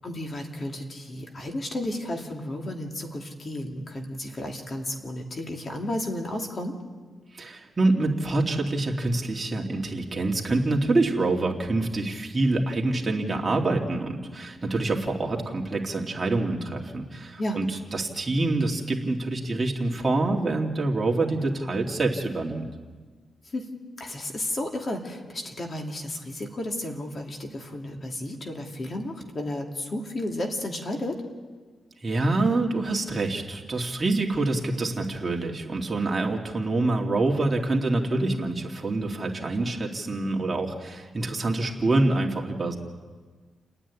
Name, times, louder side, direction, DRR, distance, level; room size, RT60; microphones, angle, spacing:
voice 1, 0.0-6.8 17.4-17.6 23.4-23.7 24.0-31.2, left 1 dB, 40° left, 2 dB, 2.7 m, -33 dB
voice 2, 7.3-22.6 32.0-42.7, right 2 dB, 25° right, 0 dB, 2.8 m, -26 dB
29.5 x 9.9 x 9.9 m, 1.4 s
cardioid pair, 100°, 0 cm